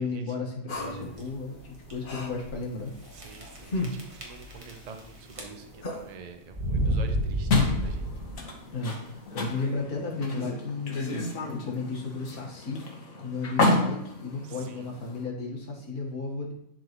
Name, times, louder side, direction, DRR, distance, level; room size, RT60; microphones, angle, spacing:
voice 1, 0.0-2.9 6.7-7.0 8.7-12.8 13.2-16.5, left 3 dB, 80° left, -2 dB, 2.1 m, -34 dB
sound 1, 0.7-6.2, left 2 dB, 40° left, 1.1 m, -38 dB
sound 2, 0.8-1.2 1.8-1.9 2.2-2.3 3.2-3.6 3.8-5.0 5.3-5.8 6.5-8.5, right 1 dB, 25° right, 1.2 m, -30 dB
voice 2, 3.1-7.5 7.8-8.1 14.4-14.9, right 5 dB, 50° right, 6 dB, 0.4 m, -47 dB
sound 3, 7.5-15.2, left 2 dB, 65° left, 1.6 m, -30 dB
11.0 x 3.9 x 3.1 m, 0.78 s
omnidirectional pair, 1.5 m